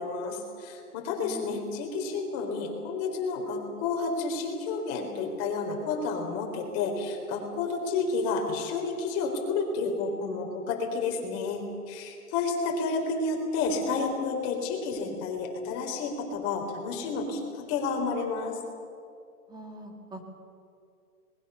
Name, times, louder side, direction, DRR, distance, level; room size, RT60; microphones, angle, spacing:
voice 1, 0.0-18.6, left 4 dB, 35° left, 3 dB, 4.2 m, -30 dB
voice 2, 1.2-1.6 19.5-20.3, right 1 dB, 10° right, 2 dB, 2.3 m, -42 dB
26.0 x 20.5 x 7.0 m, 2.4 s
hypercardioid pair, 145°, 46 cm